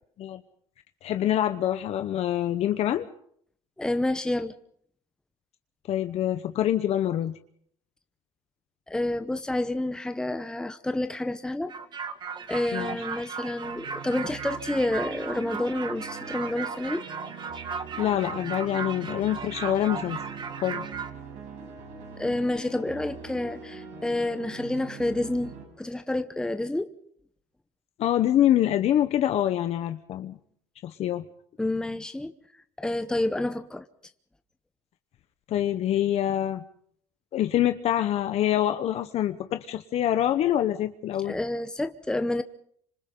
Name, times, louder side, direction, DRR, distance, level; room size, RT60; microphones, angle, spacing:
voice 1, 1.0-3.1 5.9-7.3 12.7-13.0 18.0-20.2 20.6-20.9 28.0-30.4 30.8-31.2 35.5-36.6 37.3-41.4, left 11 dB, 55° left, 1.0 m, -25 dB
voice 2, 3.8-4.5 8.9-11.7 12.5-17.1 22.1-26.9 31.6-32.3 32.8-33.9 41.2-42.4, left 1 dB, 5° left, 0.9 m, -29 dB
sound 1, 11.7-21.1, right 5 dB, 35° right, 1.9 m, -36 dB
sound 2, 13.6-25.6, right 5 dB, 70° right, 7.1 m, -42 dB
28.0 x 26.0 x 3.9 m
cardioid pair, 120°, 12 cm